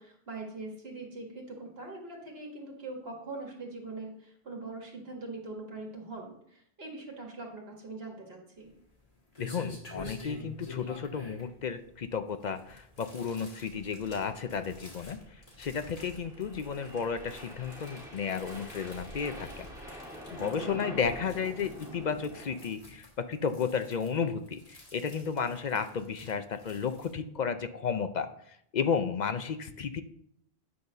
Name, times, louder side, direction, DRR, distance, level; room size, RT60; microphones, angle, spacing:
voice 1, 0.0-8.7 20.3-20.8, right 3 dB, 75° right, 0 dB, 2.1 m, -42 dB
sound 1, 8.6-27.1, left 2 dB, 35° left, 2.3 m, -50 dB
voice 2, 9.4-19.7 20.3-28.3 28.7-30.0, left 6 dB, 55° left, 10 dB, 0.6 m, -33 dB
sound 2, 11.8-12.1 13.4-22.7, equal, 5° right, 1.6 m, -46 dB
9.5 x 4.0 x 6.4 m, 0.70 s
omnidirectional pair, 1.0 m